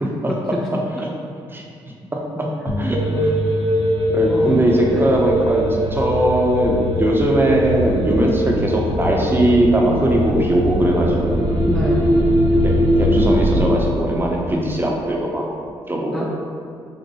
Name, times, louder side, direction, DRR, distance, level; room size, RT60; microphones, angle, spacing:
voice 1, 0.0-0.3 1.0-1.1 1.5-1.6 2.8-3.3 4.1-5.6 5.9-11.5 12.5-12.7 13.0-15.5 15.9-16.3, right 1 dB, 20° right, -2 dB, 0.8 m, -19 dB
sound 1, 2.7-8.9, left 1 dB, 65° left, 0.9 m, -30 dB
sound 2, 2.9-13.7, equal, 60° right, 1.1 m, -21 dB
voice 2, 4.3-4.6 4.9-5.1 11.7-12.2 14.5-14.8 16.1-16.3, left 1 dB, 5° left, -4 dB, 0.5 m, -27 dB
5.2 x 2.5 x 3.0 m, 2.3 s
supercardioid pair, 55°, 11 cm